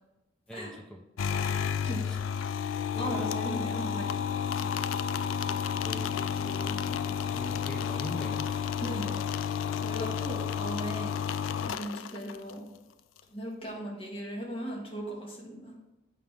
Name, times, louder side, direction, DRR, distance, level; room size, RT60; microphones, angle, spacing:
voice 1, 0.5-1.0 1.5-2.2 2.9-3.3 5.8-8.5, equal, 5° left, 3 dB, 0.5 m, -43 dB
sound 1, 1.2-12.5, left 7 dB, 90° left, 0.3 m, -31 dB
voice 2, 3.0-4.2 8.8-9.2 9.8-11.1 11.6-12.7 13.3-15.7, equal, 30° left, -2 dB, 1.5 m, -37 dB
7.7 x 4.9 x 3.5 m, 1.0 s
head